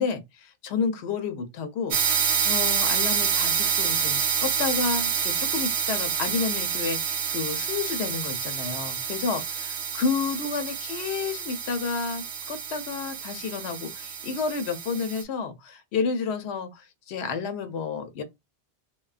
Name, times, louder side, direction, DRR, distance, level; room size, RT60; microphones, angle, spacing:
voice 1, 0.0-18.2, left 5 dB, 85° left, 0.8 m, -30 dB
sound 1, 1.9-15.2, right 6 dB, 85° right, 0.9 m, -28 dB
3.2 x 2.2 x 2.3 m
omnidirectional pair, 1.1 m